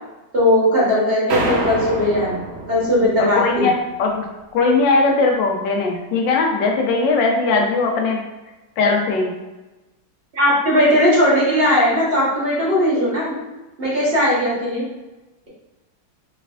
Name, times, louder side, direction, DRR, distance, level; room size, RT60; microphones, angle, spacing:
voice 1, 0.3-2.4 2.7-3.7 10.3-13.3 13.8-14.8, left 1 dB, 35° right, -7 dB, 1.3 m, -18 dB
sound 1, 1.3-3.7, right 1 dB, 70° right, 0.6 m, -26 dB
voice 2, 3.2-3.7 4.0-4.2 4.5-8.2 8.8-9.3, left 3 dB, 90° left, 1 dB, 1.4 m, -19 dB
3.4 x 3.2 x 2.4 m, 1.1 s
omnidirectional pair, 1.9 m